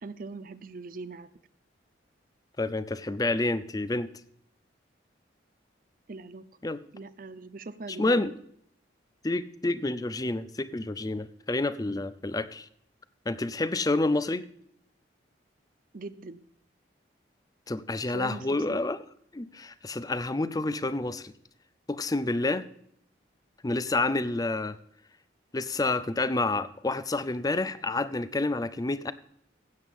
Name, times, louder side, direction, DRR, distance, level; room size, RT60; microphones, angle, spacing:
voice 1, 0.0-1.3 6.1-6.4 6.9-8.3 15.9-16.4 18.1-18.8, right 3 dB, 45° right, 14 dB, 0.6 m, -41 dB
voice 2, 2.6-4.1 6.6-6.8 8.0-8.3 9.2-12.7 13.3-14.4 17.7-19.0 19.3-21.3 21.9-22.6 23.6-24.8 25.5-29.1, left 2 dB, 20° left, 14 dB, 0.5 m, -29 dB
16.0 x 8.5 x 3.6 m, 0.67 s
head